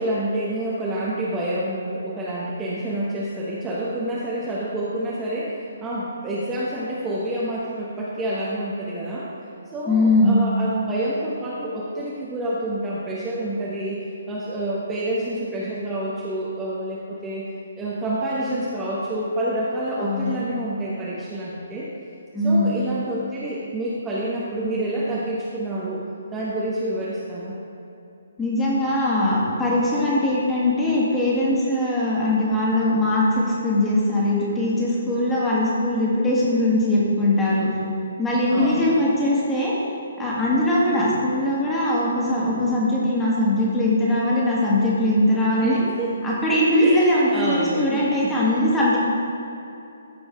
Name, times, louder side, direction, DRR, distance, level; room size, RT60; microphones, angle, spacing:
voice 1, 0.0-9.3 9.7-17.4 17.8-21.9 22.4-26.0 26.3-27.5 38.5-38.9 45.6-46.1 46.8-48.4, right 1 dB, 10° right, -8 dB, 1.0 m, -28 dB
voice 2, 9.9-10.4 20.0-20.3 22.3-22.8 28.4-37.7 38.2-39.7 40.2-45.8 46.2-49.0, left 1 dB, 10° left, -7 dB, 2.0 m, -21 dB
14.0 x 5.3 x 3.6 m, 2.8 s
figure-of-eight pair, 135°, 0 cm